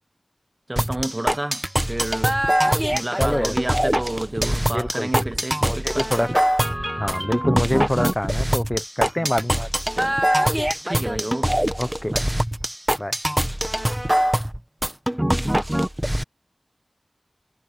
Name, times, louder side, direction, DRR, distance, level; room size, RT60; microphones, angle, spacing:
voice 1, 0.7-2.4 2.7-6.4 9.2-9.3 10.0-10.2 10.8-11.5 12.1-12.3, right 1 dB, 30° right, 1.3 m, -30 dB
sound 1, 0.8-16.2, equal, 10° right, 1.3 m, -23 dB
voice 2, 3.2-3.5 4.7-5.2 5.6-6.4 7.0-9.7 11.8-12.2 13.0-13.1, left 1 dB, 15° left, 0.9 m, -25 dB
wide cardioid pair, 55°, 0 cm